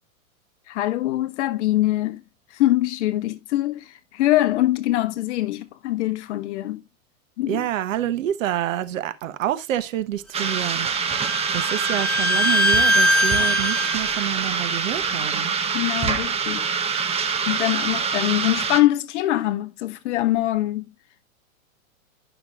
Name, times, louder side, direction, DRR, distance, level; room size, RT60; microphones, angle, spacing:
voice 1, 0.7-2.2 2.5-6.8 7.4-7.6 15.7-16.7 17.4-20.8, left 15 dB, 55° left, 1.1 m, -23 dB
voice 2, 7.5-15.5, right 12 dB, 65° right, 1.0 m, -28 dB
sound 1, 10.3-18.8, right 6 dB, 15° right, 0.8 m, -25 dB
Bowed string instrument, 10.4-14.2, equal, ahead, 0.3 m, -22 dB
11.0 x 6.0 x 2.3 m
hypercardioid pair, 115°, 42 cm